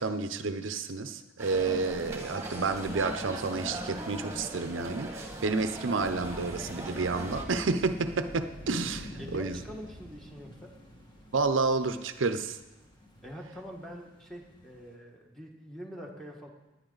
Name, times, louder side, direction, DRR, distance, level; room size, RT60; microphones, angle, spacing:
voice 1, 0.0-9.6 11.3-12.6, right 4 dB, 90° right, 9 dB, 0.7 m, -30 dB
sound 1, 1.4-7.4, right 1 dB, 15° right, 1.7 m, -39 dB
sound 2, 6.0-14.9, equal, 25° left, 2.0 m, -47 dB
voice 2, 9.2-10.8 13.2-16.5, equal, ahead, 0 dB, 1.6 m, -44 dB
19.0 x 9.9 x 4.0 m, 1.1 s
head